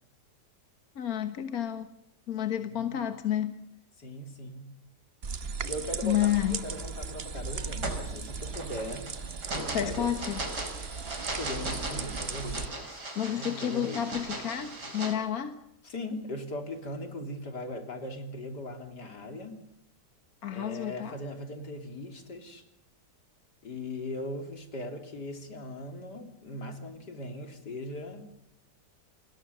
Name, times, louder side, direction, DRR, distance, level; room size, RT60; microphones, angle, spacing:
voice 1, 0.9-1.9 2.3-3.5 6.0-6.6 9.7-10.4 13.1-15.6 20.4-21.2, left 11 dB, 60° left, 8 dB, 1.8 m, -30 dB
voice 2, 4.0-4.7 5.7-9.1 9.6-10.1 11.3-14.1 15.8-19.6 20.5-22.6 23.6-28.2, left 1 dB, 80° left, 5 dB, 3.9 m, -39 dB
sound 1, 5.2-12.7, right 5 dB, 40° right, 1.3 m, -37 dB
sound 2, 6.7-7.0 7.5-15.1, right 2 dB, 75° right, 5.0 m, -38 dB
29.5 x 21.0 x 7.0 m, 0.79 s
omnidirectional pair, 1.8 m